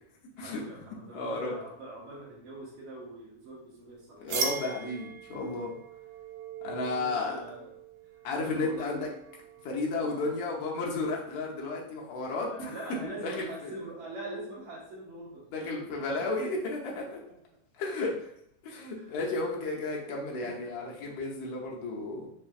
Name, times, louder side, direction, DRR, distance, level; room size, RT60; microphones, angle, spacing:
voice 1, 0.4-4.6 6.6-7.7 8.3-9.1 10.0-10.4 12.5-16.5 16.9-17.4 19.0-19.1 20.4-20.8, right 2 dB, 70° right, -5 dB, 2.1 m, -44 dB
voice 2, 1.1-1.6 4.2-5.7 6.6-7.4 8.2-9.1 9.6-12.7 13.2-13.7 15.5-17.2 17.8-18.1 18.6-22.3, left 3 dB, 90° left, -2 dB, 1.3 m, -33 dB
sound 1, 4.3-9.8, right 5 dB, 90° right, 2.3 m, -39 dB
5.4 x 2.5 x 2.4 m, 0.73 s
omnidirectional pair, 3.6 m